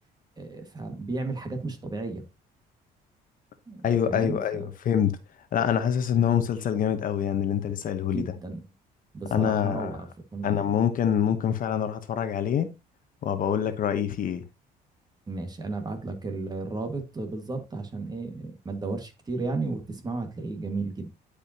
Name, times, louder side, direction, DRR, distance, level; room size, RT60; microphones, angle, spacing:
voice 1, 0.4-2.3 3.7-4.7 8.0-8.6 9.1-10.5 15.3-21.1, right 3 dB, 25° right, 1.9 m, -34 dB
voice 2, 3.8-5.2 5.5-8.2 9.3-10.0 10.4-12.7 13.2-14.4, left 8 dB, 55° left, 1.1 m, -25 dB
11.0 x 5.0 x 2.9 m
cardioid pair, 110°, 17 cm